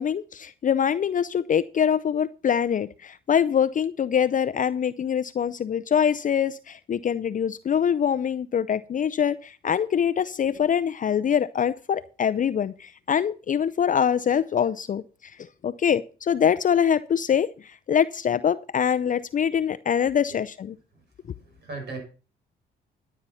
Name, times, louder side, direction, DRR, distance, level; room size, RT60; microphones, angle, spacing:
voice 1, 0.0-15.4 15.6-20.7, left 8 dB, 40° left, 0.5 m, -24 dB
voice 2, 21.2-22.0, right 3 dB, 60° right, 6.5 m, -38 dB
12.5 x 8.5 x 5.6 m
cardioid pair, 90°, 20 cm